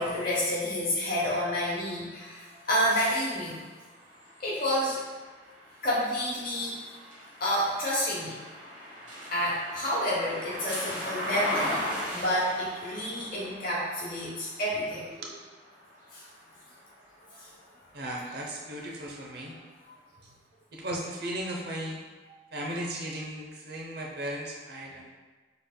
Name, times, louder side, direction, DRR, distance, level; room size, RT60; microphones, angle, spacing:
voice 1, 0.0-3.5 4.4-5.0 5.8-7.0 7.4-8.4 9.3-11.8 12.1-15.1 16.1-16.2 17.3-17.5, equal, 50° left, -6 dB, 1.0 m, -29 dB
sound 1, 1.6-17.5 18.1-19.3, equal, 40° right, 1.3 m, -40 dB
voice 2, 17.9-19.6 20.7-22.0 22.5-25.1, right 1 dB, 60° right, -1 dB, 0.8 m, -36 dB
6.5 x 3.4 x 2.3 m, 1.4 s
head